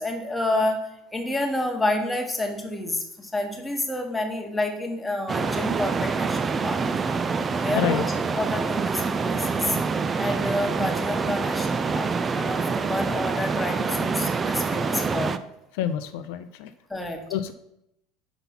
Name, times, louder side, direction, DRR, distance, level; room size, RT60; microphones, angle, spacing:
voice 1, 0.0-6.8 7.6-9.8 10.2-15.3 16.9-17.2, left 1 dB, 10° left, 2 dB, 1.3 m, -29 dB
sound 1, 5.3-15.4, right 4 dB, 25° right, 0.4 m, -26 dB
voice 2, 7.6-8.1 15.7-16.7 17.3-17.5, left 9 dB, 75° left, 10 dB, 0.4 m, -28 dB
5.7 x 4.0 x 5.6 m, 0.80 s
supercardioid pair, 105°, 0 cm